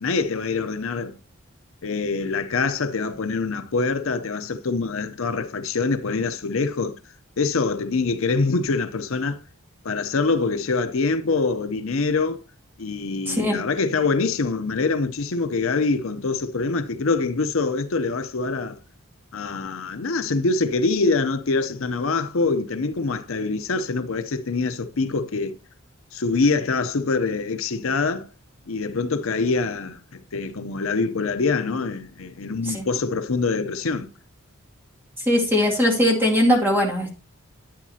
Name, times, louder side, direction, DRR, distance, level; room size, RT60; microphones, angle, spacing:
voice 1, 0.0-1.1 1.8-7.0 7.4-9.4 9.8-12.4 12.8-18.8 19.3-25.5 26.1-28.3 28.7-34.1, left 4 dB, 70° left, 0.7 m, -24 dB
voice 2, 13.3-13.6 32.6-32.8 35.3-37.1, left 1 dB, 10° right, 2.3 m, -20 dB
10.5 x 9.3 x 2.8 m
head